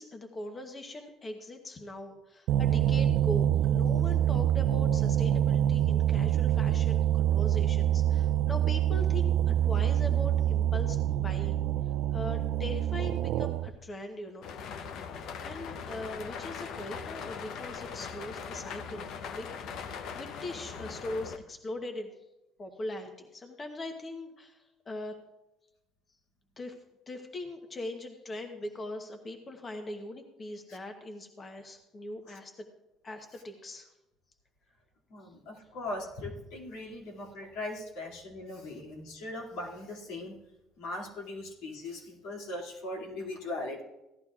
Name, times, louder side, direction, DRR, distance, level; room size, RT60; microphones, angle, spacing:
voice 1, 0.0-11.6 12.1-14.4 15.1-19.5 19.8-22.1 22.6-25.2 26.6-26.8 27.1-32.7 33.0-33.9, left 1 dB, 25° left, 5 dB, 0.9 m, -41 dB
sound 1, 2.5-13.8, right 11 dB, 75° right, 0.3 m, -26 dB
sound 2, 14.4-21.4, left 6 dB, 60° left, 0.7 m, -40 dB
voice 2, 35.1-40.4 40.8-43.8, left 2 dB, 85° left, -2 dB, 2.4 m, -39 dB
16.0 x 11.0 x 2.4 m, 0.97 s
cardioid pair, 125°, 0 cm